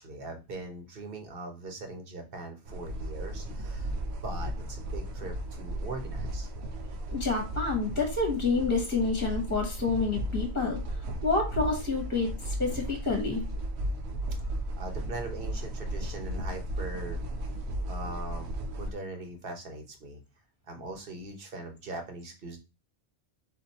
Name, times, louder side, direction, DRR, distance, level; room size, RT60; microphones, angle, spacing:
voice 1, 0.0-3.9 4.2-6.5 14.3-14.4 14.8-17.2 17.8-20.2 20.7-22.6, right 2 dB, 60° right, 4 dB, 1.2 m, -41 dB
sound 1, 2.7-18.9, right 1 dB, 80° right, 0.9 m, -35 dB
voice 2, 7.1-10.8 11.2-13.4, left 4 dB, 10° left, 2 dB, 1.1 m, -28 dB
4.3 x 2.7 x 4.1 m, 0.28 s
omnidirectional pair, 1.1 m